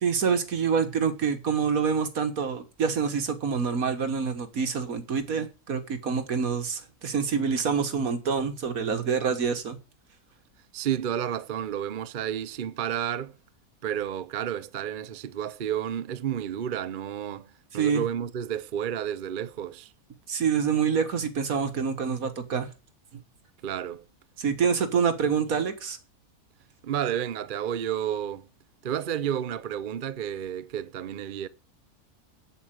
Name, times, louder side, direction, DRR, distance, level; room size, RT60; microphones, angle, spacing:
voice 1, 0.0-9.8 17.7-18.0 20.3-22.7 24.4-26.0, right 6 dB, 75° right, 1.9 m, -26 dB
voice 2, 10.7-13.3 13.8-19.9 23.6-24.0 26.8-28.5 28.8-31.5, right 10 dB, 50° right, 0.6 m, -31 dB
8.0 x 7.9 x 7.6 m
omnidirectional pair, 1.5 m